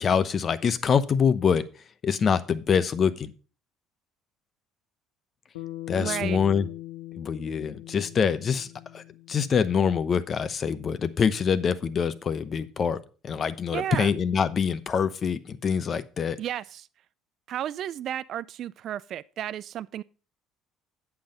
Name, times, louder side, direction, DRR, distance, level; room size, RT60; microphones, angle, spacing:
voice 1, 0.0-1.6 2.0-3.3 5.9-6.7 7.2-8.7 8.9-16.4, left 6 dB, 45° left, 0.8 m, -25 dB
Bass guitar, 5.5-10.0, left 16 dB, 90° left, 0.8 m, -41 dB
voice 2, 6.0-6.4 13.7-14.1 16.4-16.9 17.5-20.0, right 11 dB, 60° right, 0.4 m, -33 dB
8.6 x 5.9 x 5.2 m
supercardioid pair, 70°, 0 cm